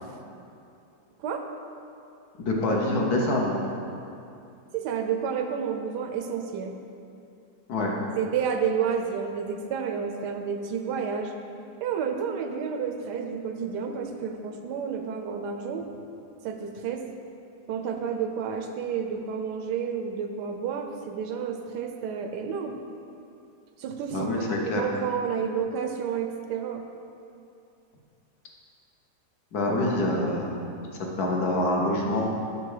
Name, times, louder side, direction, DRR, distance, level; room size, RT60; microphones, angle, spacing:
voice 1, 2.4-3.6 7.7-7.9 24.1-24.8 29.5-30.6 31.2-32.3, left 1 dB, 65° left, -1 dB, 1.4 m, -25 dB
voice 2, 4.7-6.8 8.2-11.3 11.8-15.9 16.4-17.1 17.7-22.8 23.8-26.8, right 7 dB, 75° right, 5 dB, 1.2 m, -30 dB
6.8 x 6.0 x 4.8 m, 2.6 s
omnidirectional pair, 1.9 m